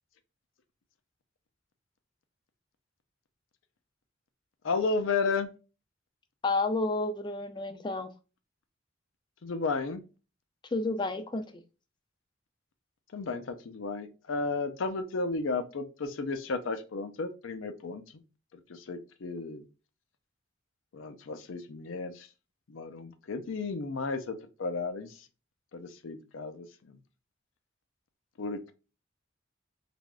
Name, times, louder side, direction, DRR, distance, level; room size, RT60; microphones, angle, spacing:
voice 1, 4.6-5.5 9.4-10.0 13.1-18.0 18.7-19.6 20.9-22.3 22.7-25.1 25.7-27.0 28.4-28.7, left 4 dB, 85° left, 10 dB, 0.5 m, -33 dB
voice 2, 6.4-8.1 10.7-11.4, left 3 dB, 25° left, 8 dB, 0.4 m, -30 dB
3.3 x 2.4 x 2.2 m, 0.32 s
head